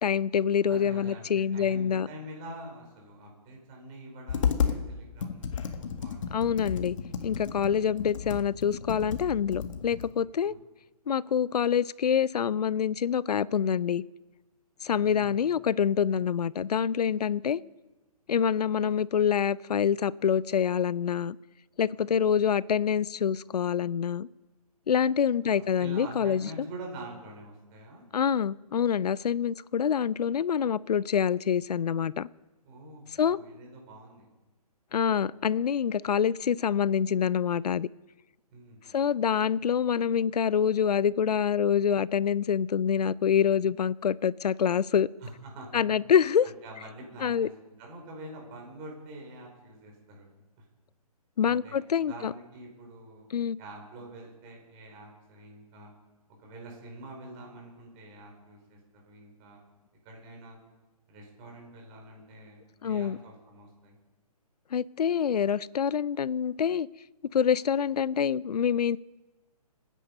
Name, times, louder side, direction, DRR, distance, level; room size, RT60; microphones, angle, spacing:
voice 1, 0.0-2.1 6.3-7.0 7.2-10.5 11.1-14.0 14.8-17.6 18.3-21.4 21.8-24.3 24.9-26.4 28.1-32.3 33.2-33.4 34.9-37.9 38.9-45.1 45.7-46.5 47.2-47.5 51.4-52.3 53.3-53.6 62.8-63.2 64.7-66.9 67.3-69.0, left 8 dB, 80° left, 0.5 m, -26 dB
voice 2, 0.7-6.2 7.6-7.8 10.4-10.6 15.0-15.3 25.4-28.0 32.6-34.3 38.5-39.0 45.2-45.8 46.4-50.3 50.6-50.7 51.4-53.3 53.6-55.9 56.4-59.6 60.0-60.6 61.1-64.0, right 1 dB, 25° right, 4.8 m, -46 dB
Computer keyboard, 4.3-4.8 5.2-10.1, left 7 dB, 55° left, 1.7 m, -32 dB
26.5 x 10.0 x 5.4 m
hypercardioid pair, 160°, 20 cm